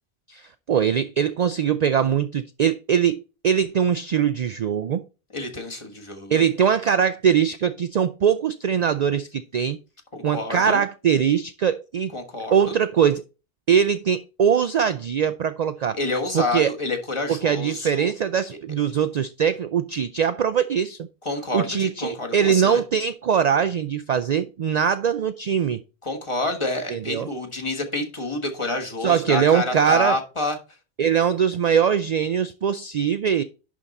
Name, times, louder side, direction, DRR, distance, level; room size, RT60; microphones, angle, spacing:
voice 1, 0.3-5.0 6.3-9.8 10.2-12.1 12.5-13.2 13.7-16.0 16.3-16.7 17.3-21.0 21.5-25.8 26.9-27.3 29.0-30.2 31.0-33.4, right 8 dB, 55° right, 0.5 m, -22 dB
voice 2, 5.3-6.4 10.1-10.8 12.1-12.8 15.9-18.1 21.2-22.8 26.0-30.6, left 2 dB, 30° left, 1.4 m, -28 dB
11.0 x 3.7 x 4.1 m
omnidirectional pair, 1.1 m